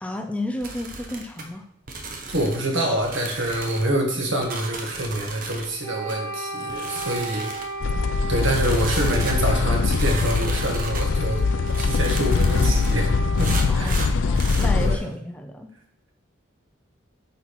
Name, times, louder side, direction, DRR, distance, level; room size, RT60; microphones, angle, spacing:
voice 1, 0.0-1.7 13.7-15.7, left 1 dB, 5° left, 4 dB, 0.5 m, -32 dB
sound 1, 0.6-1.4 1.9-2.7 3.0-3.9 4.4-5.7 6.1-6.2 6.7-7.7 8.4-9.4 9.9-11.1 11.7-13.0 13.4-14.7, right 3 dB, 45° right, 1.0 m, -35 dB
voice 2, 2.3-7.5 8.3-11.4 11.8-14.0 14.4-14.5 14.8-15.1, right 1 dB, 80° right, 0 dB, 1.8 m, -26 dB
Wind instrument woodwind instrument, 5.8-13.8, right 2 dB, 20° right, 2.0 m, -35 dB
sound 2, 7.8-15.0, left 4 dB, 70° left, 0.4 m, -22 dB
8.6 x 4.5 x 4.3 m, 0.66 s
head